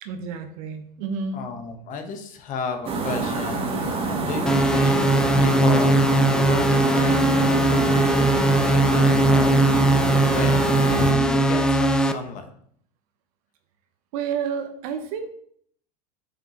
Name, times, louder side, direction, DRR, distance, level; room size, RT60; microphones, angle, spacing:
voice 1, 0.0-1.5 14.1-15.3, right 6 dB, 60° right, 7 dB, 1.1 m, -30 dB
voice 2, 1.3-5.1 5.4-12.5, left 5 dB, 40° left, 5 dB, 1.1 m, -33 dB
sound 1, 2.9-11.1, right 3 dB, 25° right, 1.4 m, -26 dB
sound 2, 4.5-12.1, right 1 dB, 5° left, 0.5 m, -19 dB
7.2 x 5.6 x 3.0 m, 0.64 s
hypercardioid pair, 85°, 21 cm